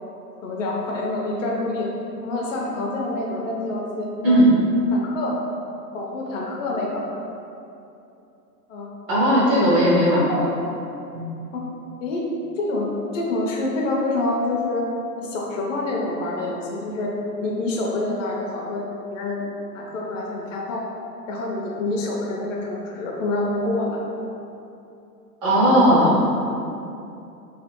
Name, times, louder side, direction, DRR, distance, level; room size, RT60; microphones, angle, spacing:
voice 1, 0.4-1.9 2.2-4.4 4.9-5.4 5.9-7.1 8.7-8.9 9.7-9.9 10.3-10.4 11.5-11.7 12.0-14.9 15.2-17.1 17.4-19.4 19.7-20.9 21.3-24.0, left 2 dB, 50° left, -2 dB, 0.6 m, -27 dB
voice 2, 9.1-10.3 11.1-11.2 25.4-26.2, equal, 25° right, -9 dB, 0.5 m, -17 dB
3.3 x 2.2 x 2.9 m, 2.7 s
hypercardioid pair, 125°, 49 cm